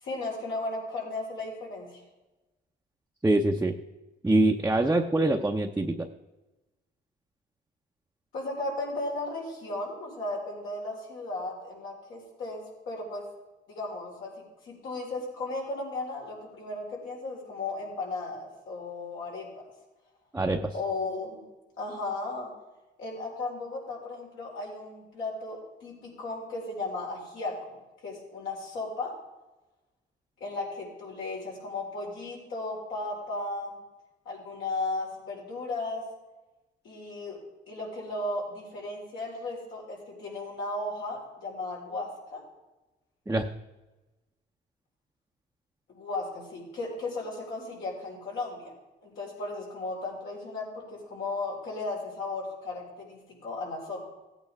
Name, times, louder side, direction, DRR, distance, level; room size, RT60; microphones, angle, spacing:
voice 1, 0.0-2.0 8.3-13.3 13.7-14.3 14.6-19.5 20.7-21.5 21.8-22.5 23.0-27.8 28.0-29.1 30.4-33.8 34.2-36.0 36.8-37.4 37.7-42.4 45.9-48.7 49.0-54.0, left 2 dB, 80° left, -3 dB, 4.6 m, -35 dB
voice 2, 3.2-3.8 4.2-6.1 20.3-20.7 43.3-43.5, right 2 dB, 10° right, 1 dB, 0.7 m, -24 dB
16.5 x 8.9 x 3.5 m, 1.1 s
cardioid pair, 90°, 20 cm